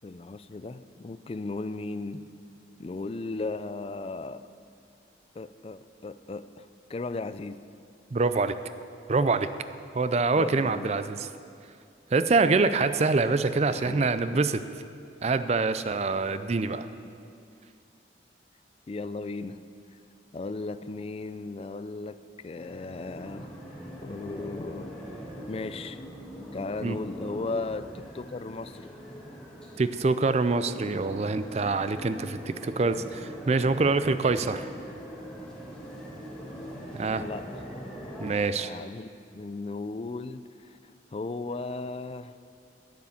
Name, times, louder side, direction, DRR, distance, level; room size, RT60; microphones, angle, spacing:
voice 1, 0.0-2.2 2.8-4.4 5.4-7.6 10.3-11.0 13.7-14.4 18.9-19.6 20.3-22.2 22.4-23.5 24.0-24.9 25.5-26.0 26.5-28.9 37.0-37.6 38.6-42.3, left 3 dB, 35° left, 13 dB, 0.3 m, -36 dB
voice 2, 8.1-8.5 9.1-9.5 9.9-11.3 12.1-14.6 15.2-16.9 26.8-27.0 29.8-34.7 36.9-37.2 38.2-38.7, right 3 dB, 35° right, 12 dB, 0.4 m, -25 dB
sound 1, 22.5-38.3, equal, 5° left, 1.7 m, -42 dB
9.5 x 9.3 x 7.1 m, 2.4 s
head